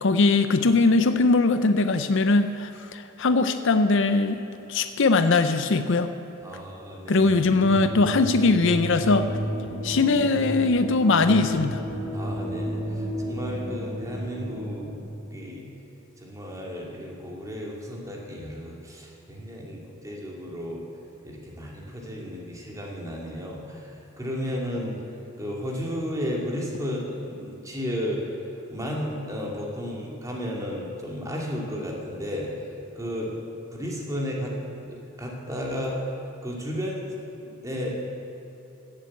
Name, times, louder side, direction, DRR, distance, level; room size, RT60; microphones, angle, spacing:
voice 1, 0.0-4.4 4.7-6.1 7.1-9.3 9.8-11.8, left 3 dB, 60° left, 10 dB, 0.6 m, -21 dB
voice 2, 6.4-7.2 9.8-10.0 12.1-14.9 15.3-15.7 16.2-20.8 21.2-25.0 25.4-28.2 28.7-32.5 33.0-33.3 33.7-36.0 36.4-37.1 37.4-38.1, equal, 15° right, -2 dB, 2.3 m, -33 dB
sound 1, 7.3-15.0, equal, 55° right, 2.6 m, -32 dB
15.5 x 7.6 x 8.4 m, 3.0 s
head